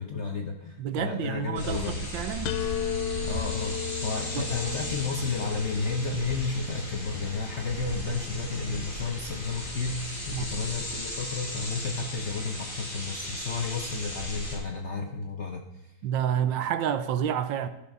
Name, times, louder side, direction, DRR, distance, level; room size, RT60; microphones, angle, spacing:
voice 1, 0.0-2.0 3.2-3.8 4.0-16.0, left 4 dB, 55° left, 0.8 m, -32 dB
voice 2, 0.8-2.6 4.3-4.5 10.3-10.5 16.0-17.7, right 9 dB, 75° right, 1.3 m, -29 dB
sound 1, 1.5-14.5, left 1 dB, 25° left, 3.5 m, -37 dB
sound 2, 2.5-8.3, left 7 dB, 90° left, 1.5 m, -35 dB
13.5 x 6.6 x 5.3 m
omnidirectional pair, 2.2 m